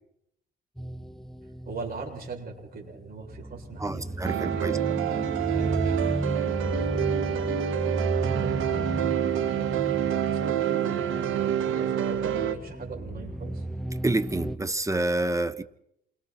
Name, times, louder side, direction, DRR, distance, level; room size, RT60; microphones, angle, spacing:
sound 1, 0.8-14.6, right 1 dB, ahead, 0.8 m, -34 dB
voice 1, 1.6-6.1 6.4-7.5 8.4-13.6, right 4 dB, 50° right, 1 dB, 7.7 m, -41 dB
voice 2, 3.8-4.8 14.0-15.6, right 2 dB, 15° right, 14 dB, 1.2 m, -28 dB
sound 2, 4.2-12.6, right 10 dB, 90° right, 1.8 m, -27 dB
28.0 x 24.5 x 4.5 m, 0.76 s
cardioid pair, 90°, 20 cm